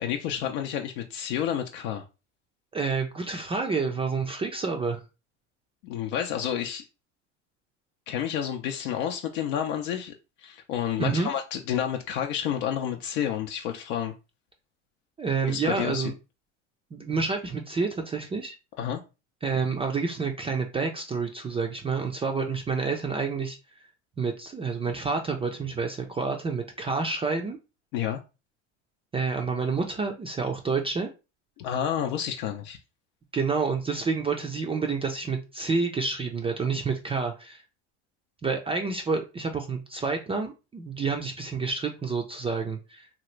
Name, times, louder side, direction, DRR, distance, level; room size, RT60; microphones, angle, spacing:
voice 1, 0.0-2.0 5.8-6.8 8.1-10.1 10.4-14.1 15.4-16.1 18.8-19.0 27.9-28.2 31.6-32.8, left 9 dB, 70° left, 3 dB, 0.6 m, -30 dB
voice 2, 2.7-5.0 11.0-11.3 15.2-16.1 16.9-18.6 19.4-23.6 24.2-27.6 29.1-31.1 33.3-37.6 38.4-43.1, right 4 dB, 15° right, 3 dB, 0.3 m, -29 dB
2.9 x 2.4 x 3.0 m, 0.29 s
supercardioid pair, 95°, 37 cm